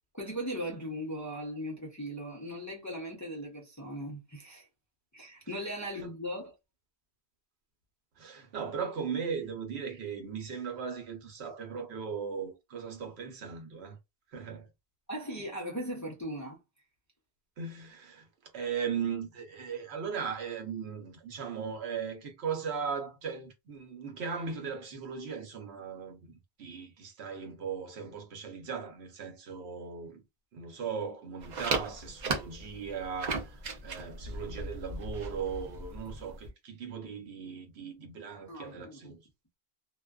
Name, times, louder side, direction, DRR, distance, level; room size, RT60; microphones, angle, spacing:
voice 1, 0.1-4.7 5.1-6.5 15.1-16.6 38.5-39.1, equal, 20° left, 0.5 m, -38 dB
voice 2, 8.2-14.0 14.3-14.7 17.6-18.3 18.5-30.2 30.5-39.2, right 6 dB, 75° right, 1.0 m, -38 dB
sound 1, 31.4-36.5, right 3 dB, 50° right, 0.6 m, -37 dB
2.5 x 2.2 x 2.3 m
omnidirectional pair, 1.1 m